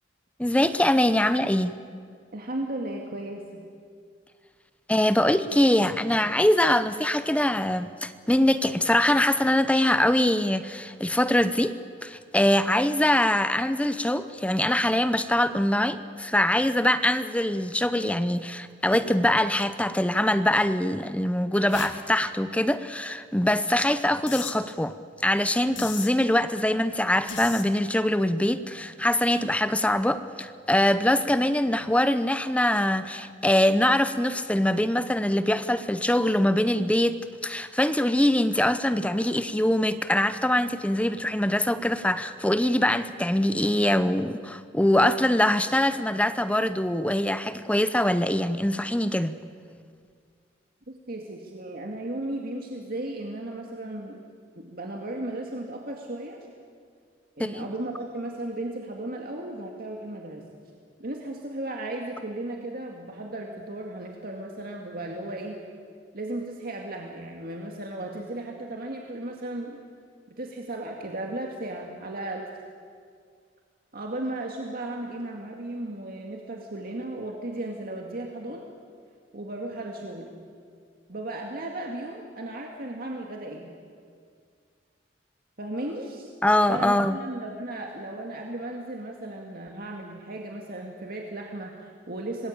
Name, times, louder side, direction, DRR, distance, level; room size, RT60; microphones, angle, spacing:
voice 1, 0.4-1.8 4.9-11.7 12.0-24.9 25.2-49.3 57.4-57.7 86.4-87.2, left 1 dB, 5° left, 12 dB, 0.8 m, -23 dB
voice 2, 2.3-3.6 50.9-54.2 54.6-56.5 57.4-60.4 61.0-65.6 66.1-69.8 70.3-72.5 73.9-78.7 79.3-80.3 81.1-83.7 85.6-86.3 86.7-92.5, right 1 dB, 55° right, 0 dB, 2.2 m, -35 dB
sound 1, 18.9-19.2 20.0-20.1 21.7-22.0 24.3-24.6 25.8-26.1 27.3-27.6, left 6 dB, 80° left, 2.0 m, -36 dB
25.5 x 20.0 x 8.8 m, 2.1 s
head